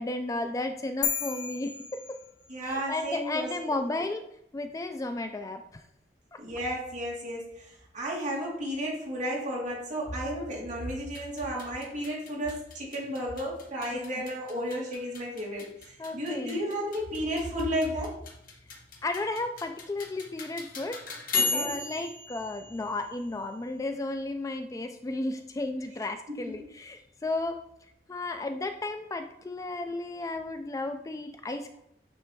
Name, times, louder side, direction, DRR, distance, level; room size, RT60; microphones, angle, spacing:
voice 1, 0.0-2.2 2.6-4.3 4.5-5.8 6.3-6.4 13.9-14.0 16.0-16.6 19.0-21.0 21.5-27.6 28.1-31.8, left 2 dB, 20° left, 7 dB, 0.3 m, -33 dB
sound 1, 1.0-2.8, left 7 dB, 70° left, 1.0 m, -34 dB
voice 2, 2.5-3.5 6.4-7.6 7.9-15.7 16.1-18.2 21.4-21.7, equal, 45° right, -4 dB, 2.5 m, -33 dB
sound 2, 11.0-23.8, left 4 dB, 50° left, 1.3 m, -37 dB
9.2 x 3.3 x 4.6 m, 0.76 s
head